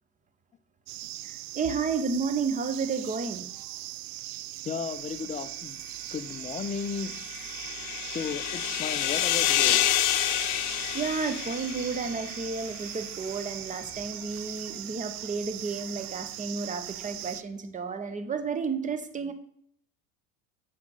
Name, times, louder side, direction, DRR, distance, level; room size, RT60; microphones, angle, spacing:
sound 1, 0.9-17.4, right 17 dB, 65° right, 0.5 m, -40 dB
voice 1, 1.2-3.5 10.9-19.3, right 5 dB, 20° right, 10 dB, 0.8 m, -32 dB
voice 2, 4.6-5.8 6.1-7.1 8.1-10.0, left 6 dB, 20° left, 12 dB, 0.5 m, -35 dB
sound 2, 6.9-12.4, left 12 dB, 50° left, 0.8 m, -28 dB
sound 3, 10.1-17.3, left 1 dB, ahead, 2.6 m, -54 dB
7.2 x 6.3 x 3.9 m, 0.67 s
hypercardioid pair, 90°, 41 cm